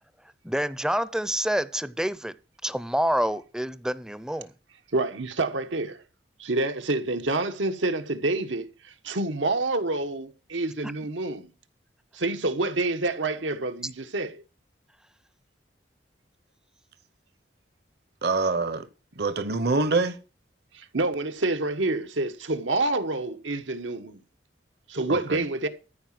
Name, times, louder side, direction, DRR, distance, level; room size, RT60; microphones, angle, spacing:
voice 1, 0.4-2.3 2.6-4.5, equal, 5° right, 0.5 m, -27 dB
voice 2, 4.9-6.0 6.4-11.5 12.1-14.4 20.7-24.2 24.9-25.7, right 2 dB, 90° right, 1.5 m, -28 dB
voice 3, 18.2-18.9 19.2-20.2 25.1-25.4, right 3 dB, 60° right, 1.0 m, -25 dB
14.0 x 5.1 x 7.6 m
head